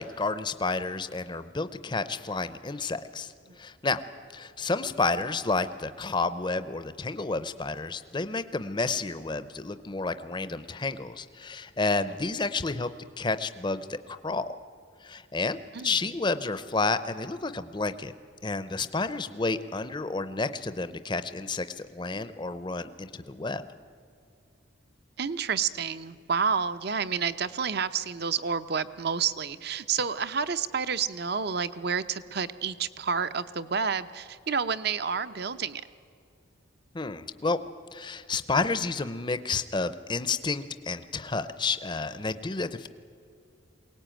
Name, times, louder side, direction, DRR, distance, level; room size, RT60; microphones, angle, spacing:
voice 1, 0.0-4.0 4.3-12.9 13.2-14.6 15.0-15.6 15.8-18.1 18.4-23.6 36.9-37.6 37.9-42.9, left 3 dB, 25° left, 12 dB, 0.6 m, -30 dB
voice 2, 25.2-35.8, right 6 dB, 55° right, 13 dB, 0.7 m, -29 dB
22.5 x 18.5 x 9.0 m, 2.4 s
head